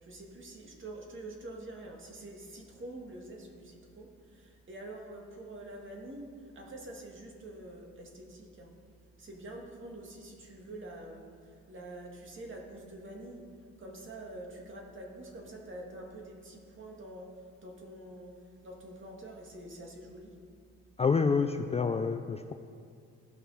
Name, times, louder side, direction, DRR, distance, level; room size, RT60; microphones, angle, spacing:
voice 1, 0.0-8.7 9.2-13.5 13.8-17.3 17.6-18.3 18.6-20.3, right 1 dB, 40° right, 0 dB, 2.1 m, -46 dB
voice 2, 21.0-22.5, left 5 dB, 20° left, 8 dB, 0.4 m, -28 dB
16.5 x 5.8 x 4.2 m, 2.3 s
cardioid pair, 90°, 30 cm